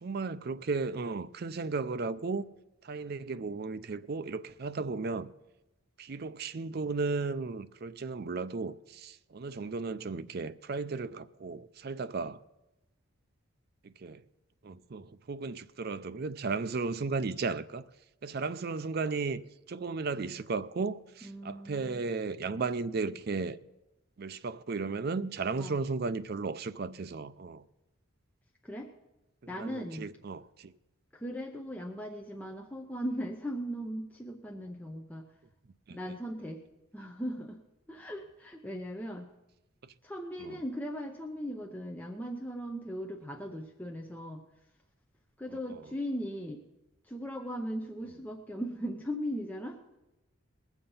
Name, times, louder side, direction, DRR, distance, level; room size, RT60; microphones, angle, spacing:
voice 1, 0.0-2.4 2.8-5.3 6.0-12.4 13.8-14.2 14.6-17.9 18.2-19.4 19.7-23.6 24.2-27.6 29.4-30.7 35.9-36.0 39.8-39.9 40.4-40.6 45.5-45.8, right 4 dB, 45° right, 0.4 m, -35 dB
voice 2, 21.2-22.1 25.6-25.8 28.6-28.9 29.5-30.1 31.1-35.3 35.9-36.6 36.9-37.6 37.9-39.3 40.0-44.4 45.4-46.6 47.0-49.8, equal, 5° left, 0.6 m, -38 dB
20.5 x 7.1 x 5.5 m
head